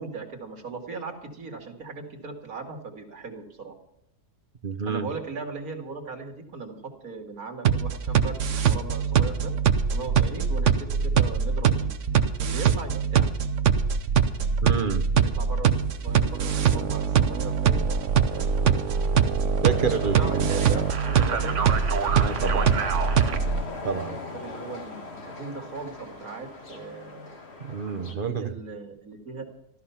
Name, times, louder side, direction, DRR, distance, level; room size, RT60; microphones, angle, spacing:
voice 1, 0.0-3.7 4.9-9.5 9.9-11.9 12.4-13.3 15.1-18.5 20.2-21.6 24.3-27.3 28.1-29.5, right 4 dB, 80° right, 4 dB, 2.6 m, -38 dB
voice 2, 4.6-5.1 14.6-15.1 19.6-20.5 22.1-22.8 23.8-24.2 27.6-28.5, right 5 dB, 40° right, 9 dB, 1.2 m, -28 dB
sound 1, 7.7-23.6, right 7 dB, 60° right, 1.2 m, -23 dB
sound 2, 19.7-28.1, left 3 dB, 45° left, 2.1 m, -39 dB
14.0 x 13.5 x 5.7 m, 0.77 s
omnidirectional pair, 1.5 m